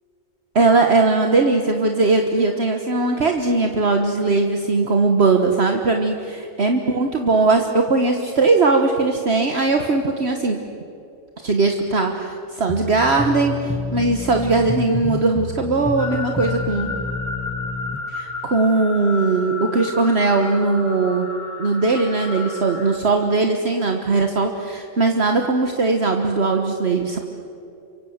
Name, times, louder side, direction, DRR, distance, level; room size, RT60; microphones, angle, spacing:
voice 1, 0.5-10.6 11.4-16.9 18.1-21.3 21.6-27.2, right 3 dB, 55° right, 4 dB, 1.6 m, -19 dB
sound 1, 12.7-18.0, left 3 dB, 10° left, 1.4 m, -29 dB
sound 2, 16.0-23.0, left 3 dB, 50° left, 2.8 m, -32 dB
29.0 x 24.5 x 8.0 m, 2.7 s
omnidirectional pair, 1.3 m